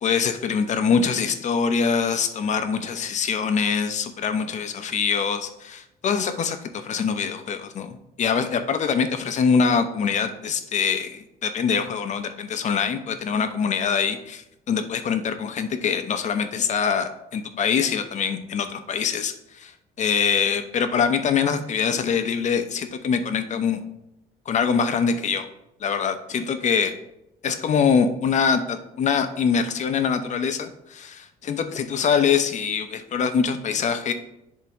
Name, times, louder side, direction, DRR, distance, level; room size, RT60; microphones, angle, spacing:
voice 1, 0.0-23.8 24.5-25.5 25.8-26.9 27.4-34.1, left 6 dB, 45° left, 8 dB, 0.8 m, -24 dB
10.5 x 3.7 x 3.0 m, 0.83 s
cardioid pair, 110°, 17 cm